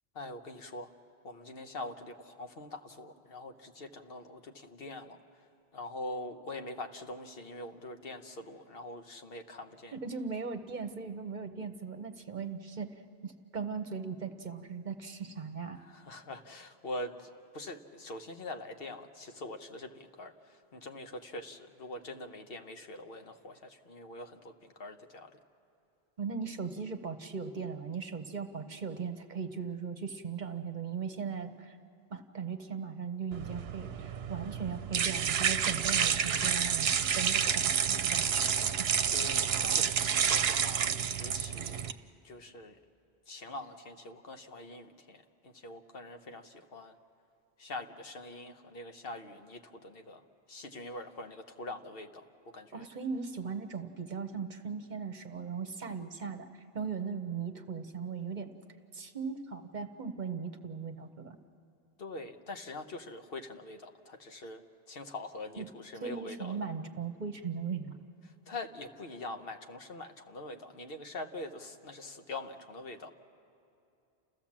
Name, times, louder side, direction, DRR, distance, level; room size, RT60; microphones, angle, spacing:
voice 1, 0.1-0.9 1.2-5.5 5.7-10.0 15.8-25.4 39.1-41.9 42.2-42.8 43.3-46.9 47.6-52.9 62.0-66.6 68.5-73.1, left 2 dB, 65° left, 6 dB, 1.2 m, -44 dB
voice 2, 9.9-15.8 26.2-31.8 32.1-36.9 37.1-38.9 52.7-58.5 58.9-61.4 65.6-65.7 66.0-68.0, right 6 dB, 50° right, 7 dB, 1.0 m, -38 dB
sound 1, 33.3-41.9, right 8 dB, 75° right, 0.9 m, -29 dB
29.5 x 15.0 x 7.3 m, 2.7 s
omnidirectional pair, 1.1 m